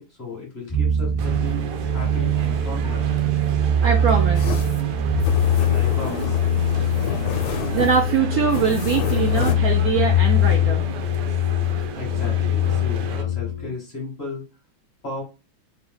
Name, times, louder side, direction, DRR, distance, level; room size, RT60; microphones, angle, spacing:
voice 1, 0.0-1.6 1.9-3.1 5.5-6.4 11.9-14.4 15.0-15.2, left 3 dB, 35° left, -2 dB, 1.3 m, -35 dB
sound 1, 0.7-13.6, left 2 dB, 60° left, 0.3 m, -22 dB
sound 2, 1.2-13.2, right 6 dB, 70° right, 1.1 m, -35 dB
voice 2, 3.8-4.6 7.5-10.8, right 6 dB, 90° right, 4 dB, 0.7 m, -23 dB
sound 3, 4.3-9.5, left 8 dB, 80° left, 1.3 m, -30 dB
4.5 x 2.1 x 3.9 m, 0.29 s
omnidirectional pair, 2.2 m